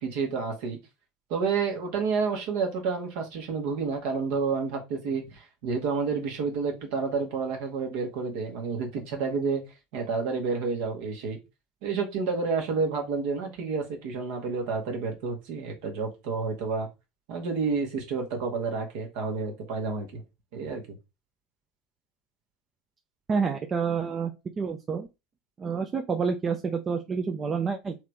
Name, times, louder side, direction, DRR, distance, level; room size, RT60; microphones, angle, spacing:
voice 1, 0.0-0.8 1.3-9.6 9.9-11.4 11.8-16.9 17.3-20.2 20.5-21.0, right 4 dB, 55° right, 1.3 m, -30 dB
voice 2, 23.3-25.1 25.6-28.0, right 5 dB, 25° right, 0.5 m, -28 dB
3.6 x 3.2 x 3.5 m
figure-of-eight pair, 70°, 0 cm